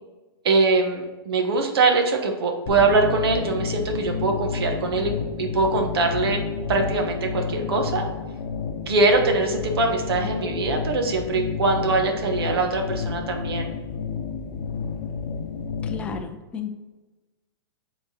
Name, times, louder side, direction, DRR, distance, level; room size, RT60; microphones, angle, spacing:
voice 1, 0.4-6.4 6.7-8.0 8.9-13.7, right 3 dB, 75° right, 3 dB, 1.2 m, -22 dB
sound 1, 2.7-16.2, left 5 dB, 55° left, 0.7 m, -30 dB
voice 2, 15.8-16.8, left 6 dB, 10° left, 6 dB, 0.3 m, -33 dB
7.2 x 3.8 x 4.2 m, 1.2 s
hypercardioid pair, 165°, 13 cm